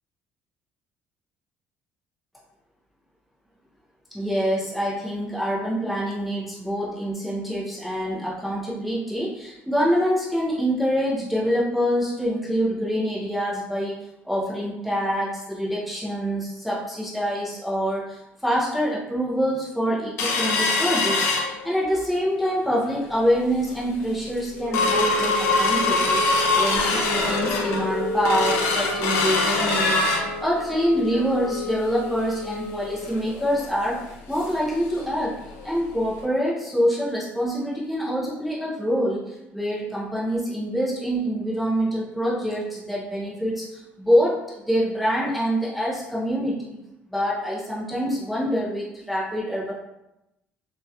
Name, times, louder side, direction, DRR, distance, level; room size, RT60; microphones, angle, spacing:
voice 1, 4.1-14.0 14.2-34.0 34.3-35.4 35.6-46.8 47.1-49.7, equal, ahead, -6 dB, 0.4 m, -25 dB
sound 1, 20.2-22.0 22.5-22.6 22.9-23.2 23.7-23.8 24.2-34.7 35.0-35.1 35.5-35.7 36.2-36.3, left 2 dB, 80° left, 0.4 m, -24 dB
2.7 x 2.2 x 2.3 m, 0.88 s
cardioid pair, 155°, 5 cm